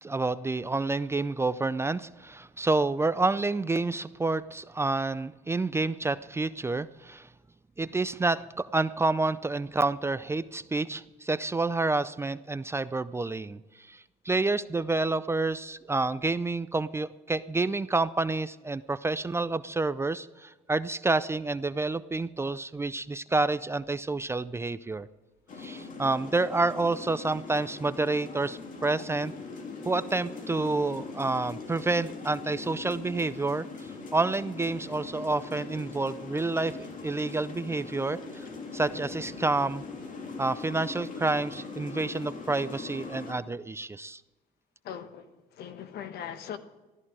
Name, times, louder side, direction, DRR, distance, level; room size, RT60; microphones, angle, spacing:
voice 1, 0.0-7.3 7.8-25.1 25.6-29.3 29.8-38.5 38.7-39.8 40.4-44.2, right 3 dB, 15° right, 15 dB, 0.4 m, -29 dB
sound 1, 25.5-43.3, left 4 dB, 50° left, 2.5 m, -41 dB
voice 2, 44.8-45.3 45.6-46.6, left 9 dB, 70° left, 10 dB, 1.2 m, -39 dB
14.0 x 13.0 x 4.8 m, 1.1 s
cardioid pair, 110°, 17 cm